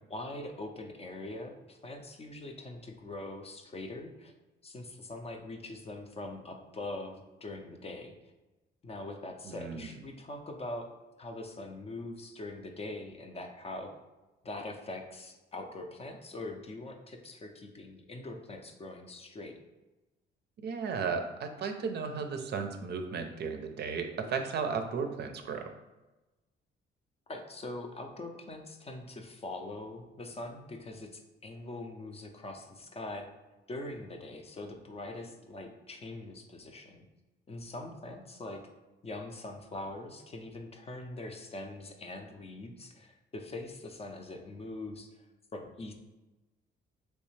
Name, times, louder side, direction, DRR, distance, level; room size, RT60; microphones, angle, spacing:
voice 1, 0.1-4.3 4.6-8.3 8.8-10.9 11.2-13.9 14.4-19.5 27.3-33.3 33.7-37.0 37.5-38.6 39.0-45.3 45.5-45.9, left 2 dB, 30° left, 4 dB, 0.5 m, -42 dB
voice 2, 9.5-9.9 20.6-25.7, right 5 dB, 55° right, 6 dB, 0.5 m, -34 dB
3.2 x 3.2 x 3.1 m, 1.1 s
cardioid pair, 90°, 20 cm